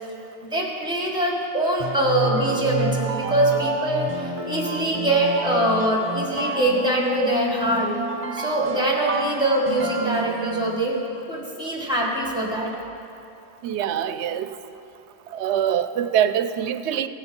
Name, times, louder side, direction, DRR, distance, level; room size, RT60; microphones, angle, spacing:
voice 1, 0.4-7.9 8.3-11.0 11.3-12.7, right 1 dB, 5° right, -1 dB, 1.8 m, -23 dB
sound 1, 1.8-11.0, right 3 dB, 30° right, 1.3 m, -29 dB
voice 2, 13.6-14.5 15.3-17.1, right 9 dB, 90° right, 11 dB, 0.9 m, -24 dB
16.5 x 9.2 x 4.5 m, 2.7 s
omnidirectional pair, 1.1 m